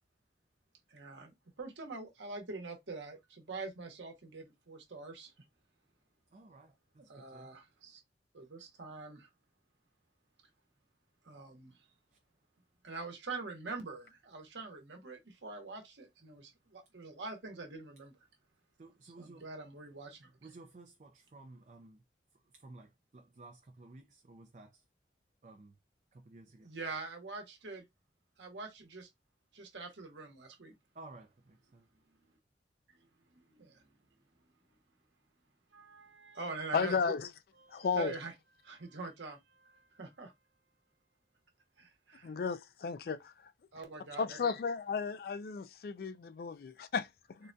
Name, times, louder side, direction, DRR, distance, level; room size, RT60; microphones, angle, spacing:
voice 1, 0.9-5.3 7.1-8.0 8.3-9.3 11.2-11.8 12.8-18.1 19.2-20.3 26.6-27.8 28.4-29.1 29.5-30.7 32.9-33.0 33.3-33.8 35.7-37.0 37.6-38.3 38.6-40.3 41.8-42.3 43.7-44.5, right 3 dB, 90° right, 1.0 m, -45 dB
voice 2, 6.3-7.5 18.8-19.5 20.4-22.0 22.5-24.8 25.4-25.8 26.1-26.7 30.9-31.9, right 2 dB, 40° right, 0.4 m, -55 dB
voice 3, 36.7-37.2 37.7-38.1 42.2-43.3 44.2-47.1, left 5 dB, 55° left, 0.3 m, -34 dB
3.8 x 2.2 x 2.6 m
head